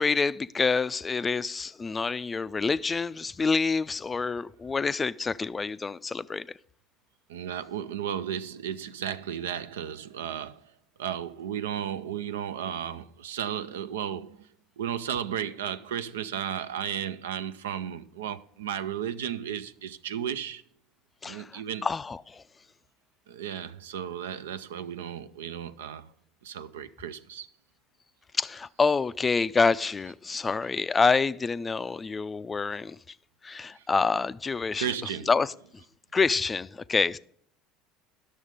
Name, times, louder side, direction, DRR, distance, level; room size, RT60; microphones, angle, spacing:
voice 1, 0.0-6.5 21.2-22.4 28.4-33.0 33.4-34.9 35.3-35.5 36.1-37.2, left 4 dB, 25° left, 0.3 m, -27 dB
voice 2, 7.3-10.6 11.0-14.5 14.8-20.6 21.2-21.9 23.3-26.1 26.4-27.5 33.8-33.9 34.8-35.3, right 9 dB, 85° right, 0.4 m, -34 dB
11.0 x 6.4 x 5.0 m
hypercardioid pair, 75°, 0 cm